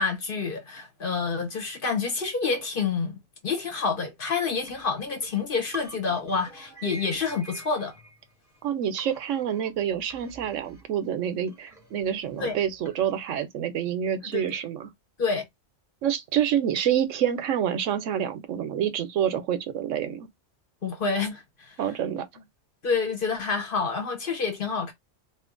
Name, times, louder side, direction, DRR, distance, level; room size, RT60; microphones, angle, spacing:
voice 1, 0.0-7.9 12.4-12.6 14.3-14.4 15.2-15.5 20.8-21.8 22.8-24.9, left 5 dB, 50° left, 1.0 m, -28 dB
sound 1, 4.7-8.6 9.0-13.4, right 2 dB, ahead, 1.0 m, -48 dB
voice 2, 8.6-14.9 16.0-20.3 21.8-22.2, right 9 dB, 80° right, 1.0 m, -27 dB
2.7 x 2.5 x 3.7 m
omnidirectional pair, 1.3 m